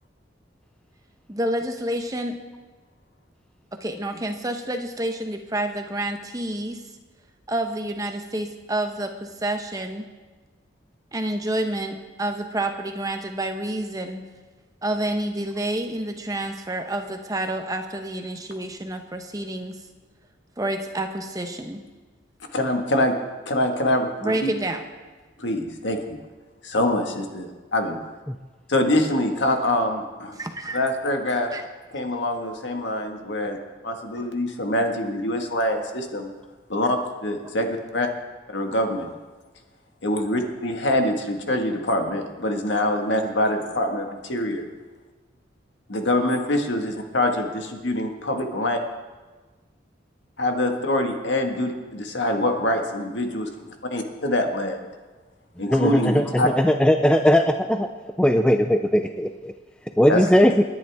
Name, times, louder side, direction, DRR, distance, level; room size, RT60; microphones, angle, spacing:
voice 1, 1.3-2.4 3.8-6.8 7.5-10.0 11.1-14.3 14.8-19.8 20.6-21.8 24.2-24.8 30.4-30.8 31.5-31.6 37.4-37.5, right 1 dB, 20° right, 5 dB, 0.9 m, -29 dB
voice 2, 22.5-23.1 23.4-24.5 25.4-26.2 26.6-28.0 28.7-30.4 30.7-31.5 31.9-33.6 33.8-36.3 36.7-38.1 38.5-39.1 40.0-44.6 45.9-48.8 50.4-54.8 55.6-56.5 60.1-60.3, left 1 dB, 70° left, 3 dB, 1.7 m, -24 dB
voice 3, 55.7-56.2 56.6-57.9 58.2-59.5 60.0-60.6, equal, 5° left, 6 dB, 0.4 m, -18 dB
29.0 x 10.5 x 3.6 m, 1.3 s
head